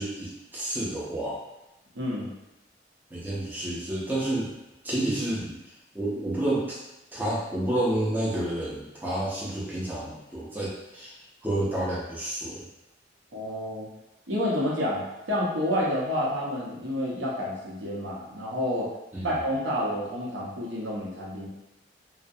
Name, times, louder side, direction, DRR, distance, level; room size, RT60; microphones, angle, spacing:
voice 1, 0.0-1.4 3.1-4.5 4.8-5.6 5.9-6.8 7.1-11.1 11.4-12.6 19.1-19.3, right 1 dB, 10° right, -7 dB, 0.5 m, -29 dB
voice 2, 1.9-2.3 13.3-13.9 14.3-15.0 15.3-18.9 19.2-21.5, equal, 85° right, -5 dB, 0.7 m, -29 dB
2.5 x 2.1 x 2.6 m, 0.95 s
head